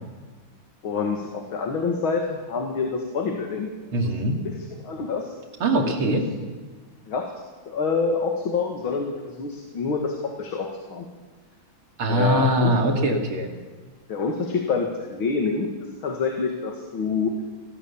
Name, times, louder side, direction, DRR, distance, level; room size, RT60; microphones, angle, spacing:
voice 1, 0.8-3.7 4.2-4.5 4.8-5.4 6.1-6.2 7.1-7.3 7.7-11.1 12.1-12.7 14.1-15.7 16.0-17.3, left 4 dB, 75° left, 2 dB, 2.8 m, -27 dB
voice 2, 3.9-4.4 5.6-6.3 12.0-13.5, right 1 dB, 90° right, 2 dB, 3.5 m, -22 dB
26.0 x 18.0 x 7.2 m, 1.4 s
omnidirectional pair, 2.3 m